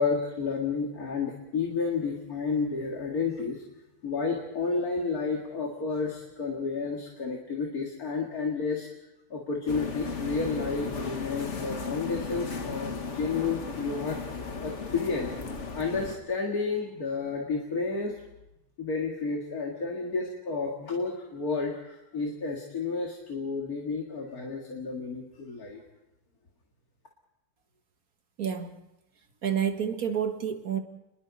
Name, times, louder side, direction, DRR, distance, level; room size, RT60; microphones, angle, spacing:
voice 1, 0.0-3.6 4.0-8.9 9.3-14.2 14.6-15.3 15.7-18.2 18.8-25.8, left 4 dB, 70° left, 0 dB, 2.6 m, -31 dB
sound 1, 9.7-16.2, left 4 dB, 50° left, 1.8 m, -35 dB
voice 2, 28.4-28.7 29.4-30.8, right 8 dB, 65° right, 6 dB, 2.0 m, -29 dB
29.5 x 22.0 x 4.2 m, 0.89 s
omnidirectional pair, 1.7 m